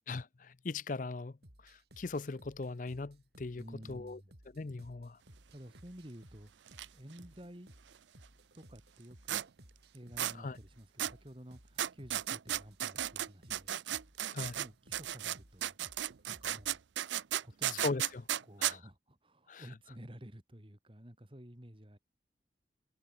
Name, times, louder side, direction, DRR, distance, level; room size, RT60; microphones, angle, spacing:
voice 1, 0.1-1.3 1.6-4.2 4.5-5.2 10.4-10.6 14.3-14.6 17.7-18.3 18.6-18.8 19.5-19.6, left 3 dB, 45° left, 0.5 m, -39 dB
sound 1, 1.4-16.8, right 1 dB, 60° right, 6.0 m, -60 dB
voice 2, 3.5-4.3 5.5-6.5 6.9-7.7 8.5-9.5 9.9-13.7 14.6-15.8 16.3-16.8 17.3-17.9 18.4-22.0, equal, 30° right, 2.7 m, -52 dB
sound 2, 6.7-6.8 7.1-7.2 9.3-9.4 10.2-10.3 11.0-11.1 11.8-14.7 14.9-18.7, right 12 dB, 80° right, 0.5 m, -35 dB
head